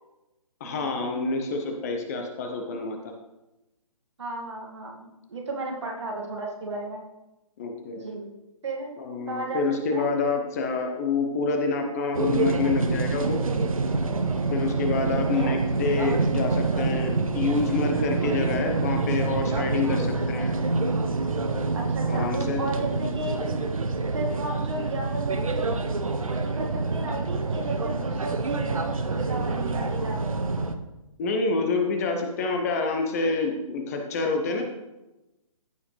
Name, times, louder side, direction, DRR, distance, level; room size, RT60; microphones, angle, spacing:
voice 1, 0.6-3.1 7.6-8.1 9.0-13.4 14.5-20.5 22.1-22.6 31.2-34.6, left 4 dB, 25° left, 4 dB, 0.9 m, -27 dB
voice 2, 4.2-7.0 7.9-8.3 8.6-8.9 9.3-9.6 9.9-10.1 15.1-15.6 21.7-23.4 24.1-25.9 26.2-30.6, right 2 dB, 55° right, -1 dB, 2.1 m, -34 dB
sound 1, 12.1-30.7, right 3 dB, 70° right, 0.8 m, -26 dB
14.5 x 4.9 x 3.3 m, 0.98 s
figure-of-eight pair, 135°, 18 cm